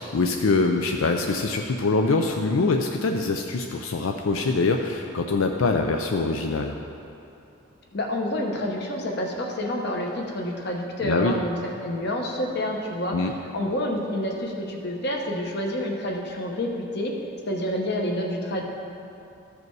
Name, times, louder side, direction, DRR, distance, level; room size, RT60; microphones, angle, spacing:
voice 1, 0.0-6.7 11.0-11.4 13.1-13.3, left 3 dB, 85° left, 3 dB, 0.5 m, -24 dB
voice 2, 7.9-11.6 11.8-13.2 13.5-17.1 17.5-18.6, left 1 dB, 55° left, 1 dB, 1.0 m, -28 dB
13.5 x 5.1 x 4.7 m, 2.7 s
head